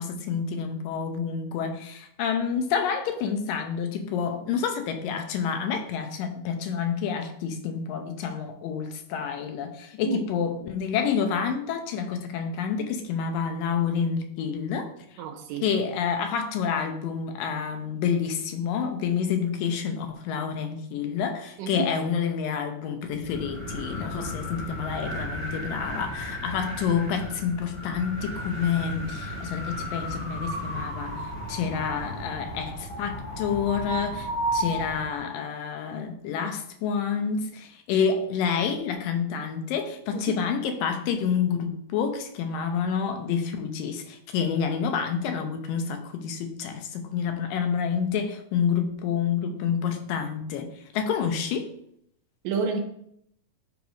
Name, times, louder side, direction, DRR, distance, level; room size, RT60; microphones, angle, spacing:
voice 1, 0.0-15.2 15.6-51.7, left 7 dB, 80° left, 6 dB, 2.3 m, -28 dB
voice 2, 15.2-15.7 21.6-21.9 40.1-40.4 52.4-52.8, right 5 dB, 75° right, 5 dB, 2.3 m, -30 dB
sound 1, 23.1-35.2, equal, 20° left, 2.3 m, -34 dB
10.5 x 5.1 x 3.2 m, 0.70 s
omnidirectional pair, 4.2 m